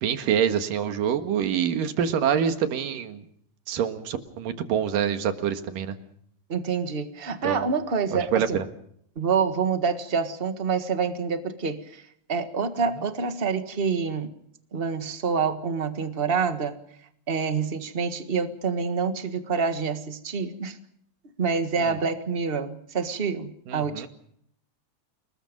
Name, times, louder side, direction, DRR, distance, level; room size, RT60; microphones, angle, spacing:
voice 1, 0.0-3.2 3.7-6.0 7.4-7.7 8.1-8.7 21.8-22.0 23.7-24.1, right 8 dB, 80° right, 8 dB, 3.3 m, -26 dB
voice 2, 6.5-8.6 9.2-12.0 12.3-14.3 14.7-16.8 17.3-20.8 21.4-24.1, right 5 dB, 55° right, 8 dB, 0.6 m, -27 dB
29.0 x 20.0 x 5.3 m, 0.69 s
omnidirectional pair, 3.9 m